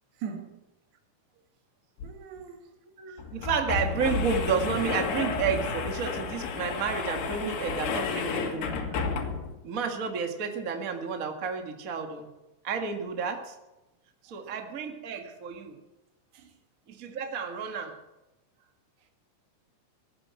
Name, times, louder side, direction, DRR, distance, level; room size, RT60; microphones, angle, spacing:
voice 1, 0.2-0.6 2.0-2.7 9.2-9.5 14.3-14.5 16.3-16.5, right 7 dB, 80° right, 4.0 m, -41 dB
sound 1, 2.0-2.1 2.4-2.5 3.2-9.6, left 5 dB, 75° left, 3.8 m, -31 dB
voice 2, 3.0-8.9 9.6-12.3 12.6-13.5 14.2-15.8 16.9-17.9, right 6 dB, 65° right, 0.8 m, -31 dB
16.5 x 8.9 x 8.6 m
omnidirectional pair, 4.8 m